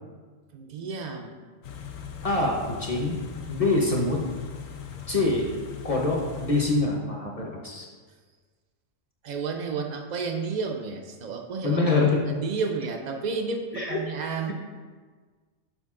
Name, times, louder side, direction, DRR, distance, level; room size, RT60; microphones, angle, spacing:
voice 1, 0.5-1.4 9.2-11.8 12.2-14.5, right 5 dB, 60° right, 3 dB, 0.4 m, -31 dB
Car / Idling, 1.6-6.7, left 8 dB, 90° left, 1.0 m, -39 dB
voice 2, 2.2-3.2 3.5-4.2 5.1-5.5 5.8-7.9 11.6-12.2 13.7-14.0, left 3 dB, 35° left, -1 dB, 0.7 m, -25 dB
6.2 x 5.1 x 3.7 m, 1.5 s
omnidirectional pair, 1.3 m